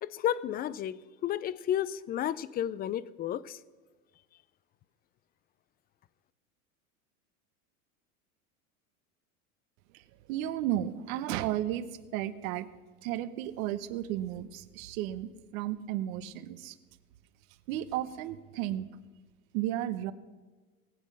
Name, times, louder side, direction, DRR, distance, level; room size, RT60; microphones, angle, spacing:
voice 1, 0.0-3.6, left 11 dB, 25° left, 0.3 m, -32 dB
voice 2, 9.9-11.9 12.1-12.7 13.0-16.7 17.7-18.9 19.5-20.1, right 12 dB, 65° right, 1.1 m, -33 dB
19.0 x 8.3 x 6.2 m
hypercardioid pair, 100°, 44 cm